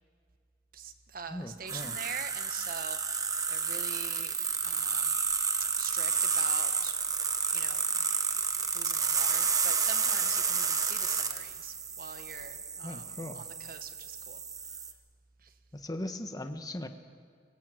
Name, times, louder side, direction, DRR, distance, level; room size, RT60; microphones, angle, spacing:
voice 1, 0.7-4.3 4.6-5.2 5.6-7.0 7.5-7.9 8.6-14.8 15.4-15.5, right 5 dB, 50° right, 9 dB, 1.4 m, -44 dB
voice 2, 1.3-1.9 12.8-13.4 15.7-16.9, left 1 dB, 20° left, 7 dB, 1.2 m, -39 dB
sound 1, 1.7-14.9, right 5 dB, 20° right, 1.1 m, -31 dB
22.5 x 19.0 x 7.7 m, 2.1 s
head